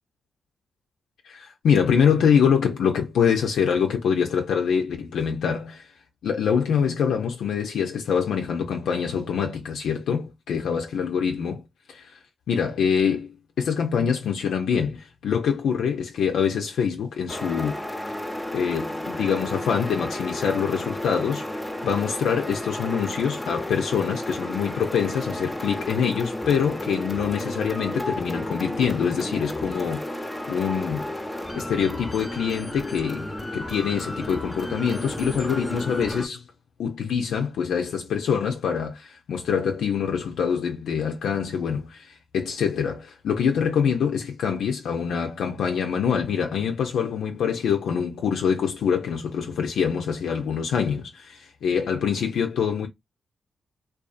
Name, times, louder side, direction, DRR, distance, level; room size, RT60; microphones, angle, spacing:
voice 1, 1.2-5.9 6.2-11.6 11.9-12.2 12.5-17.8 18.5-31.1 31.5-36.4 36.8-52.9, left 7 dB, 75° left, 0.4 m, -25 dB
sound 1, 17.3-36.3, left 1 dB, 10° left, 0.6 m, -32 dB
2.5 x 2.3 x 2.3 m
supercardioid pair, 45°, 0 cm